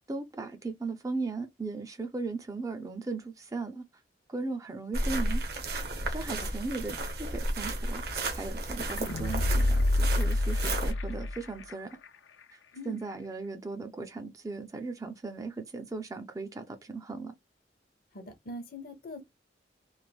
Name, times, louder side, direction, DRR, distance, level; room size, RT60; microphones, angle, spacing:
voice 1, 0.1-3.8 4.3-5.4 6.1-12.0 12.9-17.3, right 3 dB, 20° right, 0.4 m, -37 dB
sound 1, 4.9-10.9, right 1 dB, 55° right, 0.8 m, -33 dB
sound 2, 8.8-11.7 12.0-12.1, left 1 dB, 90° left, 0.5 m, -27 dB
voice 2, 18.1-19.2, left 1 dB, 55° left, 0.7 m, -42 dB
3.1 x 2.1 x 2.2 m
head